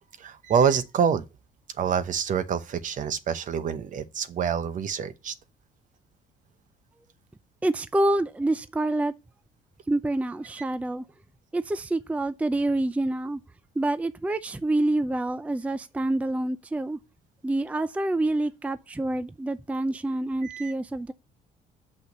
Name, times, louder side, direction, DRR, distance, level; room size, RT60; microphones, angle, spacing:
voice 1, 0.2-1.2 1.8-5.3 20.4-20.7, right 7 dB, 50° right, 0.9 m, -26 dB
voice 2, 7.6-9.1 9.9-11.0 11.5-13.4 13.8-17.0 17.4-21.1, right 2 dB, 10° right, 0.5 m, -27 dB
6.2 x 5.6 x 6.7 m
cardioid pair, 110°, 17 cm